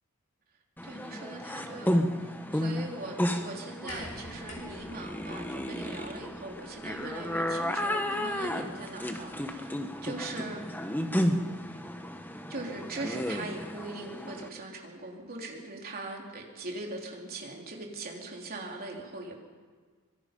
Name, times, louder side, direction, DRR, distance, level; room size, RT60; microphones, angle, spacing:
sound 1, 0.8-14.5, equal, 10° left, 1.2 m, -33 dB
voice 1, 0.8-10.6 12.5-19.4, right 2 dB, 45° right, 0 dB, 3.6 m, -41 dB
sound 2, 3.9-9.5 10.6-10.7, left 2 dB, 80° left, 5.8 m, -51 dB
25.0 x 23.5 x 5.3 m, 1.5 s
head